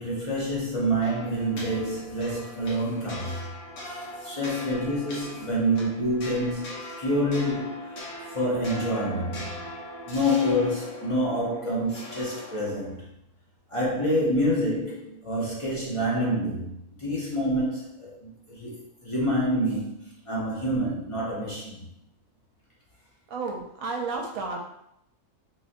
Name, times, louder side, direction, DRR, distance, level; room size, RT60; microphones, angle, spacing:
voice 1, 0.0-3.4 3.9-8.0 8.3-9.7 10.1-13.0 13.7-16.7 17.0-21.8, equal, 50° left, -5 dB, 0.4 m, -27 dB
sound 1, 1.0-13.0, left 1 dB, 70° left, 1.3 m, -40 dB
voice 2, 23.3-24.6, right 3 dB, 70° right, 1 dB, 1.1 m, -32 dB
3.8 x 2.6 x 2.5 m, 0.78 s
omnidirectional pair, 1.5 m